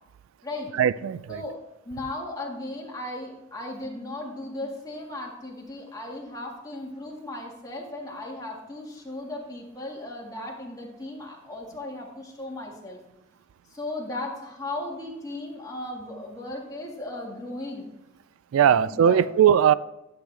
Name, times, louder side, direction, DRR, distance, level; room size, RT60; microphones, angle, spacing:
voice 1, 0.8-1.4 18.5-19.7, right 9 dB, 90° right, 18 dB, 0.3 m, -19 dB
voice 2, 1.3-1.6 1.9-13.0 13.7-17.9 18.6-19.2, left 2 dB, 20° left, -2 dB, 1.8 m, -36 dB
11.5 x 7.9 x 3.3 m, 0.95 s
head